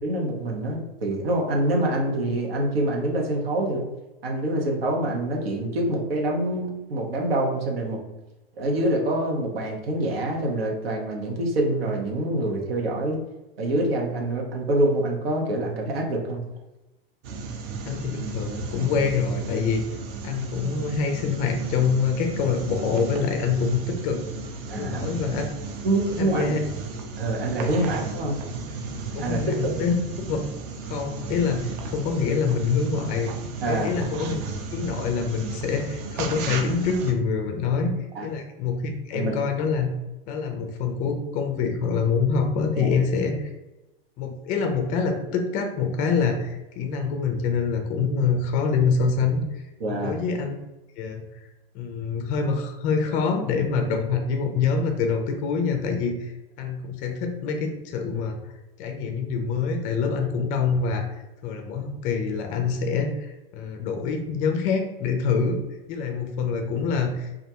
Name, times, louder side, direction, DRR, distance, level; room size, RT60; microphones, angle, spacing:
voice 1, 0.0-3.8 4.2-8.0 8.6-13.2 13.6-16.4 24.7-25.0 25.8-26.6 27.2-28.4 29.2-29.4 33.6-33.9 38.1-38.3 39.1-39.4 42.8-42.9 49.8-50.2, right 1 dB, 85° right, 0 dB, 0.8 m, -25 dB
sound 1, 17.2-37.1, right 4 dB, 45° right, 0.5 m, -34 dB
voice 2, 17.8-19.8 20.2-24.2 24.8-25.4 26.2-26.6 27.6-27.9 29.1-29.9 30.3-30.4 30.8-33.3 33.6-34.4 34.7-37.9 38.2-39.9 40.3-43.5 44.2-50.5 51.0-51.2 51.7-56.3 56.6-58.5 58.8-61.1 61.4-65.6 65.9-67.3, left 5 dB, 30° left, 4 dB, 0.3 m, -25 dB
2.3 x 2.1 x 2.7 m, 1.0 s
hypercardioid pair, 110°, 29 cm